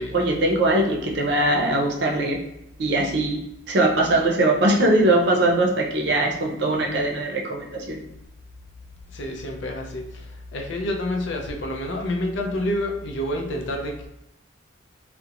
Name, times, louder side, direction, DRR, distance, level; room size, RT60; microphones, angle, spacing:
voice 1, 0.0-2.4 2.8-3.4 3.7-8.0, right 1 dB, 60° right, -1 dB, 0.5 m, -21 dB
voice 2, 9.1-14.1, left 1 dB, 70° left, 1 dB, 0.5 m, -28 dB
2.4 x 2.1 x 2.9 m, 0.87 s
head